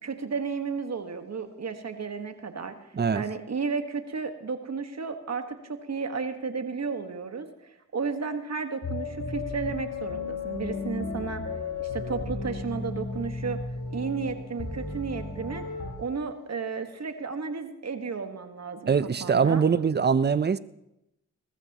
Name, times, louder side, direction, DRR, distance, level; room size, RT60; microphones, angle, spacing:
voice 1, 0.0-2.7 3.1-11.5 11.8-13.6 13.9-15.6 16.0-19.6, right 5 dB, 50° right, 1.6 m, -33 dB
sound 1, 8.8-15.9, left 3 dB, 70° left, 3.7 m, -34 dB
voice 2, 18.9-20.6, right 6 dB, 30° right, 0.6 m, -23 dB
20.0 x 14.0 x 3.0 m
supercardioid pair, 45°, 33 cm